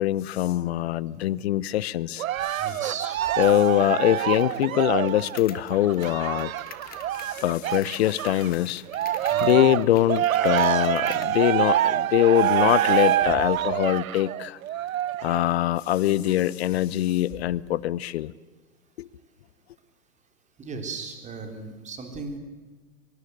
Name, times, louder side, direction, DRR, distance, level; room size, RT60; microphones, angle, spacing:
voice 1, 0.0-2.2 3.4-6.5 7.2-8.8 9.4-14.6 15.2-18.3 19.0-19.1, left 13 dB, 40° left, 22 dB, 0.8 m, -23 dB
Cheering, 2.2-8.5 8.9-15.5 16.1-16.2, right 12 dB, 55° right, 0.8 m, -26 dB
voice 2, 2.6-3.2 9.3-9.6 13.3-13.4 20.6-22.4, right 4 dB, 15° right, 5 dB, 3.9 m, -37 dB
sound 1, 4.3-11.4, left 10 dB, 20° left, 1.5 m, -47 dB
24.0 x 22.0 x 8.0 m, 1.3 s
hypercardioid pair, 125°, 49 cm